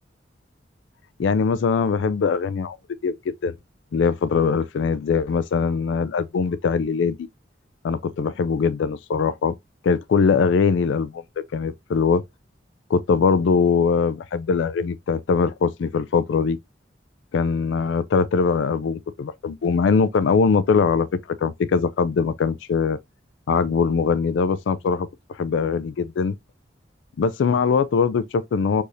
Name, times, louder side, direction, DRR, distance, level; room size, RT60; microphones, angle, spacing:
voice 1, 1.2-2.8 3.0-3.6 3.9-7.3 7.8-9.5 9.8-11.2 11.5-12.2 12.9-16.6 17.3-21.1 21.4-23.0 23.5-26.3 27.2-28.8, left 5 dB, 85° left, 0.4 m, -21 dB
6.4 x 2.7 x 2.5 m
head